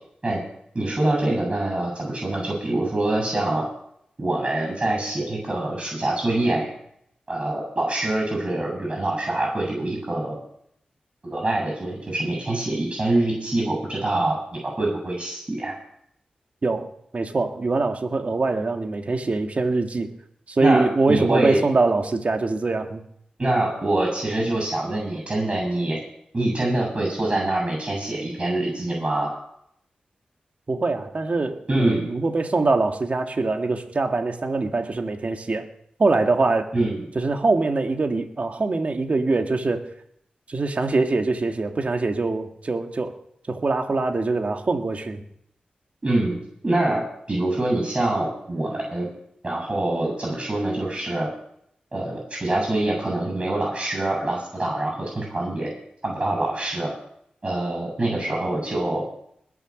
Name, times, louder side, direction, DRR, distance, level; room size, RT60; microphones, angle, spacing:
voice 1, 0.7-3.6 4.2-6.7 7.3-10.4 11.2-15.8 20.6-21.6 23.4-26.0 26.3-29.3 31.7-32.1 36.7-37.0 46.0-46.4 46.6-49.1 49.4-51.3 51.9-55.7 56.0-56.9 57.4-59.0, right 2 dB, 35° right, 0 dB, 8.0 m, -25 dB
voice 2, 17.1-20.1 20.5-23.0 30.7-35.7 36.0-36.7 37.2-39.8 40.5-43.1 43.5-45.2, right 3 dB, 50° right, 4 dB, 1.9 m, -23 dB
21.0 x 7.2 x 6.2 m, 0.70 s
cardioid pair, 60°, 3 cm